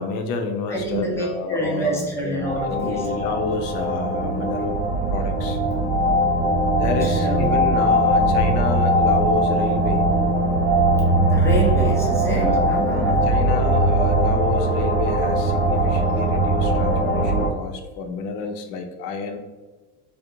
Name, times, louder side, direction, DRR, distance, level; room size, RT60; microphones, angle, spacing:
voice 1, 0.0-4.8 5.1-5.6 6.4-10.1 12.3-19.4, left 4 dB, 60° left, 5 dB, 0.5 m, -29 dB
voice 2, 0.7-3.1 7.0-7.5 11.2-13.2, right 1 dB, 5° left, -3 dB, 0.4 m, -27 dB
sound 1, 2.4-17.5, right 1 dB, 55° right, 0.7 m, -20 dB
2.4 x 2.1 x 2.8 m, 1.2 s
supercardioid pair, 110°, 46 cm